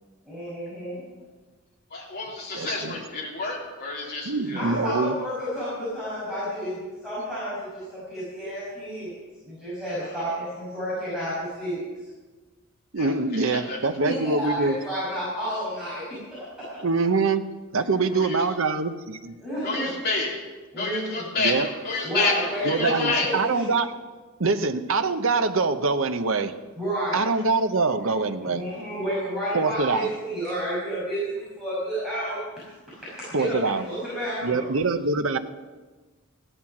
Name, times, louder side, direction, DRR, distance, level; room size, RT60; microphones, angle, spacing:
voice 1, 0.2-1.0 4.6-9.1 9.4-11.8 14.0-16.8 18.0-18.1 19.4-19.9 20.7-21.2 22.0-23.7 26.8-27.3 28.4-32.4 33.0-34.7, equal, ahead, -11 dB, 6.2 m, -31 dB
voice 2, 1.9-4.6 10.0-10.2 12.9-13.8 18.1-18.4 19.6-20.4 20.8-23.3, left 3 dB, 45° left, -3 dB, 3.5 m, -29 dB
voice 3, 2.5-3.0 4.2-5.1 12.9-14.7 16.8-19.3 21.4-21.7 22.6-23.9 24.4-26.5 27.1-28.6 29.5-30.1 33.3-33.9 34.4-35.4, right 3 dB, 60° right, 9 dB, 0.9 m, -24 dB
16.0 x 11.0 x 6.0 m, 1.3 s
head